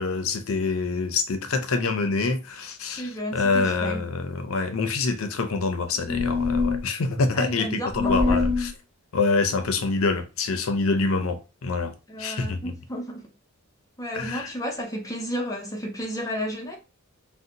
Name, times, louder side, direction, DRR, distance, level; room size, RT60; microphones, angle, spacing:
voice 1, 0.0-8.7 9.1-11.9 12.2-12.7 14.1-14.5, left 3 dB, 70° left, 0.6 m, -26 dB
voice 2, 3.0-4.0 7.3-8.4 12.1-13.3 14.0-16.8, equal, 15° left, 0.7 m, -32 dB
sound 1, 6.1-6.8 7.9-8.7, left 4 dB, 20° right, 1.0 m, -23 dB
2.7 x 2.1 x 3.8 m
head